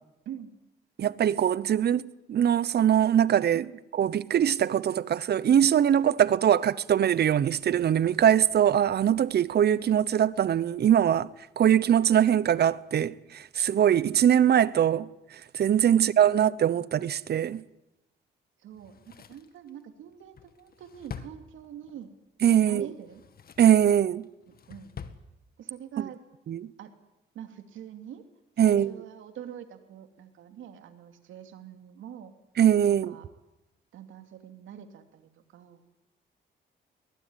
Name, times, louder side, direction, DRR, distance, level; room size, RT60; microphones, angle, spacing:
voice 1, 1.0-3.7 3.9-11.3 11.6-15.1 15.5-17.6 22.4-22.9 23.6-24.3 26.0-26.1 26.5-26.7 28.6-28.9 32.6-33.2, right 10 dB, 55° right, 0.9 m, -22 dB
voice 2, 15.9-16.4 18.6-22.1 22.6-23.2 24.5-24.9 25.6-26.2 26.8-26.9 27.3-28.2 28.6-32.3 32.9-33.3 33.9-35.8, right 9 dB, 80° right, 2.7 m, -44 dB
Drawer open or close, 18.7-22.0 22.9-23.8 24.2-25.2 25.5-25.6, left 7 dB, 50° left, 1.9 m, -46 dB
22.0 x 19.5 x 9.8 m
cardioid pair, 90°, 20 cm